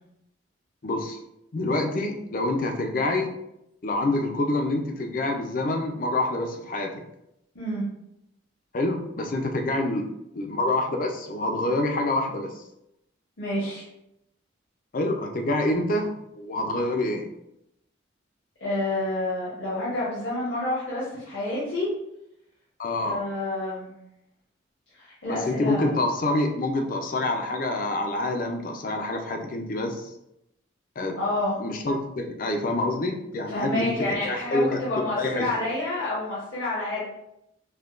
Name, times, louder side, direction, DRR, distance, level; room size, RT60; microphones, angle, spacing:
voice 1, 0.8-1.2 1.5-3.3 3.8-6.9 8.7-10.1 10.3-12.6 14.9-16.1 16.4-17.2 22.8-23.2 25.2-30.1 31.0-31.2 31.6-34.0 34.2-35.5, left 2 dB, 45° left, 3 dB, 0.5 m, -27 dB
voice 2, 13.4-13.9 18.6-21.9 23.0-23.9 24.9-26.0 31.2-31.6 33.5-37.0, left 1 dB, 75° left, -8 dB, 1.2 m, -29 dB
5.5 x 2.2 x 2.5 m, 0.82 s
head